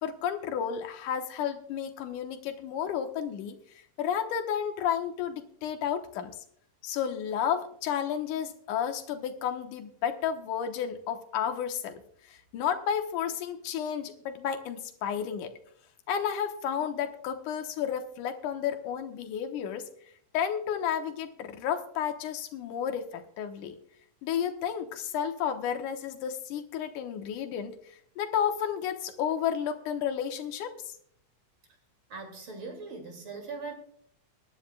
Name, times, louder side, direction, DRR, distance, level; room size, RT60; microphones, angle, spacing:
voice 1, 0.0-3.6 4.0-6.4 6.8-12.0 12.3-15.5 16.1-19.9 20.3-23.8 24.2-27.8 28.2-30.7, left 8 dB, 80° left, 6 dB, 2.5 m, -32 dB
voice 2, 32.1-33.7, right 4 dB, 40° right, 4 dB, 3.0 m, -40 dB
22.0 x 11.0 x 2.3 m, 0.66 s
omnidirectional pair, 3.7 m